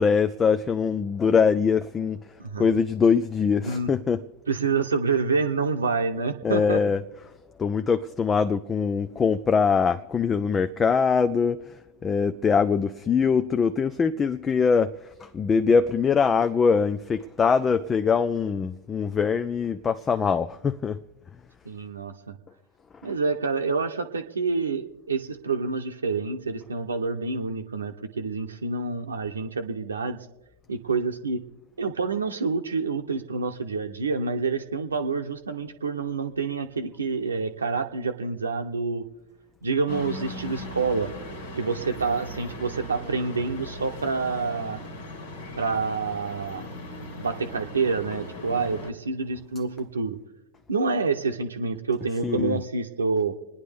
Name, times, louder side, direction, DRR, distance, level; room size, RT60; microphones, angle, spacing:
voice 1, 0.0-2.3 2.6-4.2 6.4-7.0 7.6-21.0 22.9-23.0 52.2-52.6, left 5 dB, 20° left, 0.4 m, -23 dB
voice 2, 4.5-6.8 21.6-22.3 23.0-30.2 30.7-31.4 31.8-39.1 39.6-41.1 41.5-44.8 45.6-46.7 47.2-50.2 50.7-53.3, right 4 dB, 75° right, 0.9 m, -27 dB
sound 1, 39.9-48.9, left 1 dB, 60° left, 1.7 m, -38 dB
28.0 x 10.0 x 3.5 m
figure-of-eight pair, 90°, 0 cm